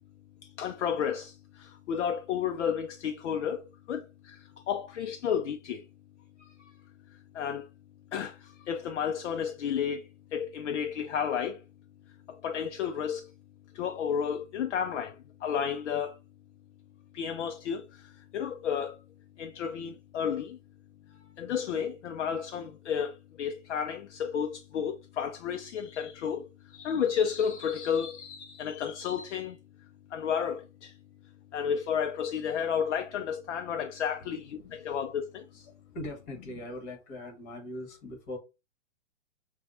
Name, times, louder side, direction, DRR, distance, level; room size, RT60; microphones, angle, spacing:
voice 1, 0.4-5.9 6.4-6.7 7.1-7.7 8.1-11.6 12.3-13.3 13.7-16.2 17.1-19.0 19.4-20.6 21.1-31.0 31.5-35.7, left 8 dB, 65° left, 0.5 m, -32 dB
voice 2, 35.7-38.4, left 1 dB, 35° left, 1.5 m, -41 dB
5.6 x 2.3 x 2.6 m
hypercardioid pair, 120°, 38 cm